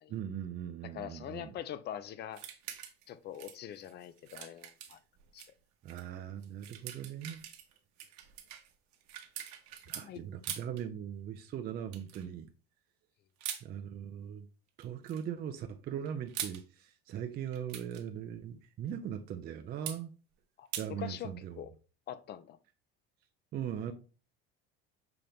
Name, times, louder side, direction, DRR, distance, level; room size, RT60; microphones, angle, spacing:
voice 1, 0.1-1.5 5.8-7.4 9.9-12.5 13.6-14.5 14.8-20.1 20.8-21.6 23.5-23.9, right 9 dB, 30° right, 0.4 m, -40 dB
voice 2, 0.9-2.4 3.1-5.0 5.3-5.5 10.0-10.2 20.6-21.3 21.6-21.7 22.1-22.6, left 10 dB, 35° left, 0.4 m, -43 dB
sound 1, 2.3-3.1 3.3-5.5 5.9-6.0 6.4-10.1 10.4-10.8 11.9-12.2 13.4-13.6 14.8-15.2 16.1-16.6 17.5-18.0 19.9-20.0 20.7-20.9, right 10 dB, 60° right, 0.9 m, -43 dB
5.7 x 2.5 x 3.4 m
supercardioid pair, 100°, 31 cm